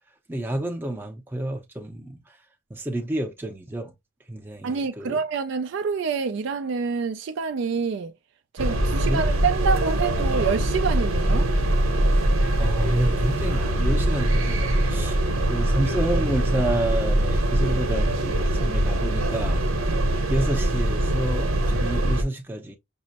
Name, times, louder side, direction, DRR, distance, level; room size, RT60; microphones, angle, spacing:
voice 1, 0.3-2.2 2.7-3.9 4.3-5.2 8.9-9.3 12.6-19.6 20.3-22.7, right 1 dB, 10° right, 0.5 m, -29 dB
voice 2, 4.6-8.1 8.5-11.5, right 5 dB, 55° right, 0.3 m, -27 dB
sound 1, 8.6-22.2, right 1 dB, 80° right, 0.9 m, -23 dB
5.3 x 2.0 x 2.8 m
head